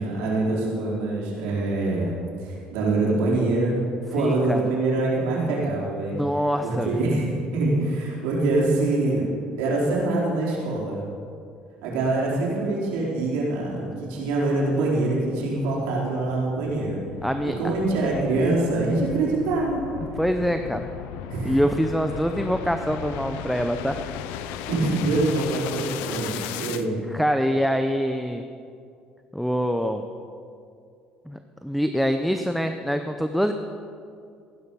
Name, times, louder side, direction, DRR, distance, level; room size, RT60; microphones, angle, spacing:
voice 1, 0.0-3.8 4.1-6.2 6.6-9.2 9.6-11.0 11.8-17.0 17.4-19.8 21.3-21.6 24.7-27.0, right 2 dB, 90° right, -4 dB, 4.2 m, -24 dB
voice 2, 4.2-4.6 6.1-7.0 17.2-17.5 20.1-20.9 21.4-24.0 27.1-28.4 29.3-30.1 31.3-33.5, equal, ahead, 7 dB, 0.7 m, -25 dB
sound 1, 15.3-26.9, left 10 dB, 85° left, 0.7 m, -36 dB
15.5 x 11.5 x 5.6 m, 2.4 s
cardioid pair, 100°, 3 cm